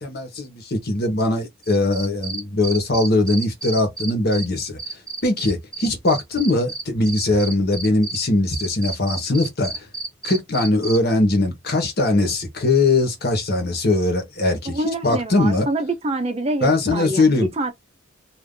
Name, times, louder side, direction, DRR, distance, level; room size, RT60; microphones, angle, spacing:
voice 1, 0.0-4.8 5.2-9.9 10.2-15.7 16.6-17.5, left 2 dB, 50° left, 1.1 m, -21 dB
Cricket, 1.6-4.4 4.8-8.2 8.5-11.0, right 3 dB, 5° left, 1.0 m, -30 dB
voice 2, 14.7-17.7, right 2 dB, 30° right, 0.6 m, -26 dB
2.6 x 2.5 x 3.7 m
head